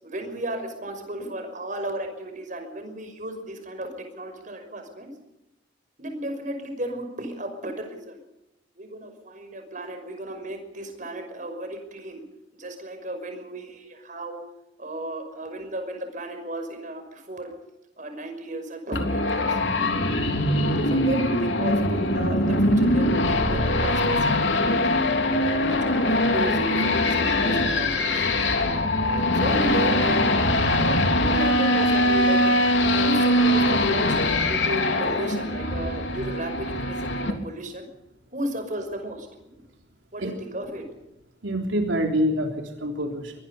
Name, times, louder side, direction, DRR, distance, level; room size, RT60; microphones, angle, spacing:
voice 1, 0.0-5.1 6.0-8.2 8.8-12.2 12.5-14.4 14.8-17.5 18.0-19.6 20.8-25.0 25.4-28.2 29.3-30.2 30.7-32.6 32.9-34.2 34.5-37.9 38.3-39.6 40.1-40.8, right 1 dB, 45° right, 6 dB, 5.7 m, -34 dB
sound 1, 18.9-37.3, left 1 dB, 75° left, 3.3 m, -22 dB
voice 2, 41.4-43.3, equal, 85° right, 2 dB, 3.6 m, -26 dB
23.5 x 20.5 x 5.5 m, 0.90 s
head